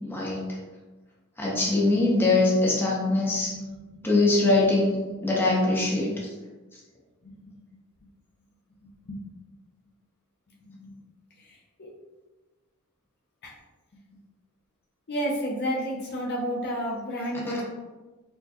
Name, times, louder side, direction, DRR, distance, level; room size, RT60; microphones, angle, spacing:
voice 1, 0.0-0.4 1.4-3.5 4.0-6.1, left 2 dB, 10° left, -5 dB, 0.7 m, -22 dB
voice 2, 3.5-4.0 9.1-9.2 10.7-10.9 11.4-11.9 13.4-13.5 15.1-17.6, equal, 50° left, -3 dB, 0.6 m, -31 dB
4.4 x 2.2 x 2.8 m, 1.2 s
head